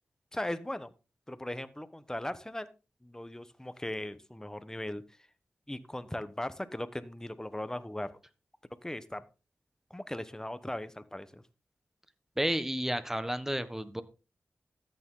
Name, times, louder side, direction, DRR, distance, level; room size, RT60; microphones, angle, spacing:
voice 1, 0.3-0.9 1.3-2.7 3.0-5.0 5.7-8.1 8.8-9.2 9.9-11.4, left 1 dB, 15° left, 13 dB, 1.2 m, -38 dB
voice 2, 12.4-14.0, equal, 10° right, 12 dB, 1.4 m, -31 dB
13.5 x 9.0 x 3.9 m, 0.32 s
cardioid pair, 50°, 4 cm